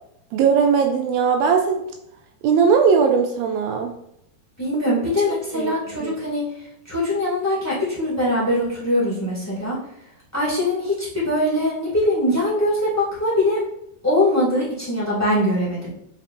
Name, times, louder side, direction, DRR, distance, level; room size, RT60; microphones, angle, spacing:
voice 1, 0.3-1.8 2.4-3.9 5.5-5.7 6.0-6.1, right 6 dB, 80° right, 4 dB, 2.2 m, -18 dB
voice 2, 4.6-6.4 6.8-9.8 10.3-13.6 14.0-15.9, left 1 dB, 10° left, -7 dB, 0.8 m, -22 dB
7.8 x 4.7 x 2.6 m, 0.77 s
omnidirectional pair, 4.5 m